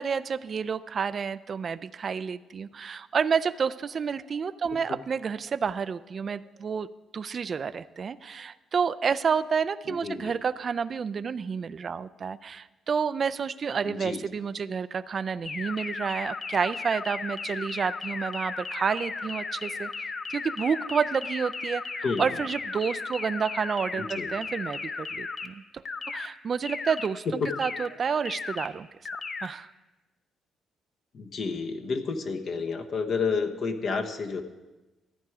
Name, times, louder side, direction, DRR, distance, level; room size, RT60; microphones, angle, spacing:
voice 1, 0.0-6.9 7.1-19.9 20.3-27.2 27.6-28.9 29.4-29.7, right 6 dB, 45° right, 16 dB, 0.4 m, -30 dB
voice 2, 9.8-10.4 13.8-14.2 22.0-22.2 23.9-24.3 27.3-27.5 31.1-34.4, left 4 dB, 60° left, 5 dB, 1.1 m, -30 dB
sound 1, 15.5-25.5 25.9-26.3 26.7-27.1 27.5-27.9 28.3-28.7 29.1-29.5, left 4 dB, 40° left, 0.8 m, -35 dB
14.0 x 9.2 x 4.8 m, 1.1 s
cardioid pair, 90°, 0 cm